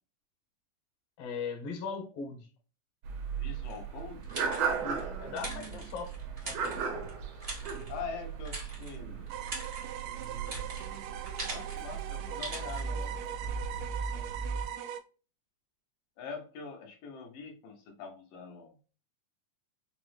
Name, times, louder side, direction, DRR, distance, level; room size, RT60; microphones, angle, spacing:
voice 1, 1.2-2.5 4.8-6.1 6.4-6.8, left 5 dB, 70° left, 1.4 m, -39 dB
sound 1, 3.0-14.7, right 6 dB, 70° right, 1.6 m, -37 dB
voice 2, 3.4-4.2 7.9-9.3 11.5-13.2 14.1-14.3 16.2-18.8, left 5 dB, 85° left, 2.6 m, -44 dB
sound 2, 3.7-5.0 5.4-7.1 7.4-8.0 8.4-9.0 9.3-11.9 12.4-12.8, right 2 dB, 50° right, 0.6 m, -42 dB
sound 3, 9.3-15.0, right 10 dB, 85° right, 1.5 m, -41 dB
5.7 x 2.1 x 3.1 m
omnidirectional pair, 3.7 m